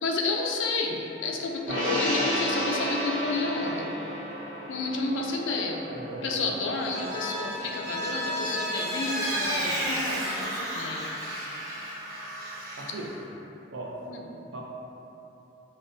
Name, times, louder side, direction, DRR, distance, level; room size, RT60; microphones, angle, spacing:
voice 1, 0.0-3.8 4.7-5.8 6.2-11.1 14.1-14.2, left 3 dB, 75° left, 0 dB, 0.4 m, -31 dB
Gong, 1.7-8.3 8.6-8.8, equal, 40° right, 1.0 m, -32 dB
voice 2, 5.9-6.6 12.8-13.1 13.7-14.0 14.5-14.7, right 2 dB, 70° right, -2 dB, 0.5 m, -38 dB
Vehicle, 6.7-13.1, equal, 15° right, 0.6 m, -32 dB
5.2 x 2.1 x 2.6 m, 3.0 s
head